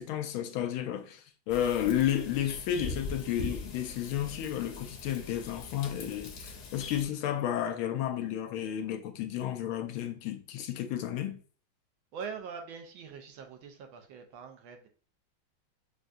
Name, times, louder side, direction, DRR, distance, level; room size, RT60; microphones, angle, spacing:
voice 1, 0.0-11.4, left 10 dB, 90° left, 1.5 m, -32 dB
sound 1, 1.5-7.0, left 4 dB, 60° left, 1.2 m, -42 dB
voice 2, 12.1-14.9, right 6 dB, 75° right, 1.5 m, -43 dB
6.2 x 2.3 x 2.5 m
omnidirectional pair, 2.2 m